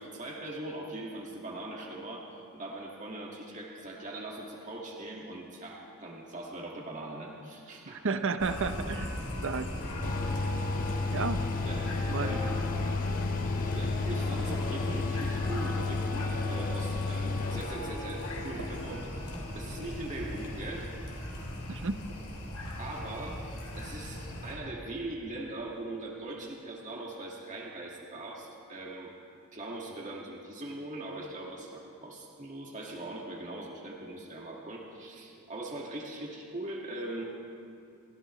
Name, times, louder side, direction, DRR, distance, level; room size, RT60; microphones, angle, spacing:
voice 1, 0.0-8.1 11.6-11.9 12.2-12.6 13.7-20.9 22.8-23.4 23.7-29.1 29.5-37.2, right 2 dB, 35° right, -2 dB, 1.8 m, -41 dB
voice 2, 7.9-9.2 9.4-9.7 11.1-11.4 12.0-12.4 18.6-18.7 21.7-22.0, right 4 dB, 60° right, 10 dB, 0.8 m, -32 dB
sound 1, 8.4-24.5, left 1 dB, 80° left, 3.4 m, -37 dB
Mechanical fan, 10.0-18.4, left 4 dB, 40° left, 0.4 m, -33 dB
29.5 x 15.0 x 3.1 m, 2.5 s
head